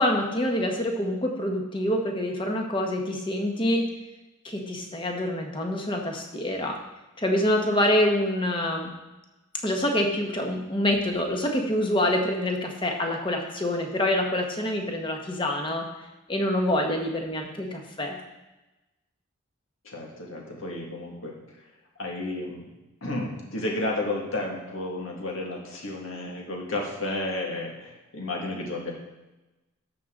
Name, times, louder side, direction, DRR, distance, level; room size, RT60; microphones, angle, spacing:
voice 1, 0.0-3.9 4.4-6.8 7.2-8.9 9.6-15.9 16.3-18.2, left 1 dB, 25° left, 2 dB, 1.2 m, -26 dB
voice 2, 19.8-21.4 22.0-22.6 23.0-28.9, left 2 dB, 70° left, -1 dB, 1.9 m, -32 dB
13.5 x 6.7 x 3.8 m, 1.1 s
head